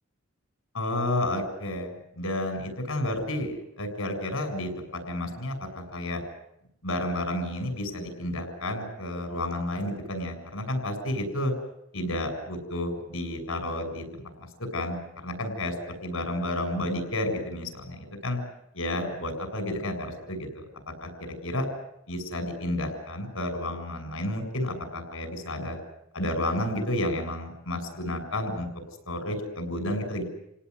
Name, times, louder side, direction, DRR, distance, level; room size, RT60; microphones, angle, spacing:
voice 1, 0.7-4.7 5.1-6.2 6.8-11.5 11.9-14.5 14.7-18.4 18.7-20.6 21.0-21.7 22.1-25.8 26.1-28.7 29.1-30.2, left 1 dB, 85° left, 6 dB, 7.2 m, -31 dB
29.5 x 18.0 x 9.8 m, 0.80 s
head